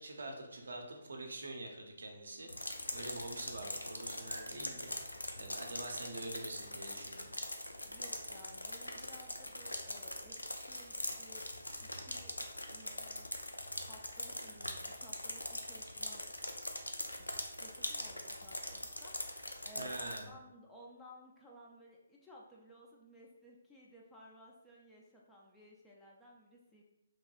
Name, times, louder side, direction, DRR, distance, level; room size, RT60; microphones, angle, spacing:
voice 1, 0.0-4.9 5.3-7.3 19.8-20.3, right 2 dB, 60° right, 2 dB, 0.5 m, -45 dB
sound 1, 2.5-20.2, left 1 dB, 80° left, 0.4 m, -42 dB
voice 2, 7.8-11.5 11.8-16.2 17.1-26.8, equal, 5° left, -4 dB, 0.3 m, -57 dB
2.9 x 2.2 x 2.9 m, 0.92 s
figure-of-eight pair, 140°, 0 cm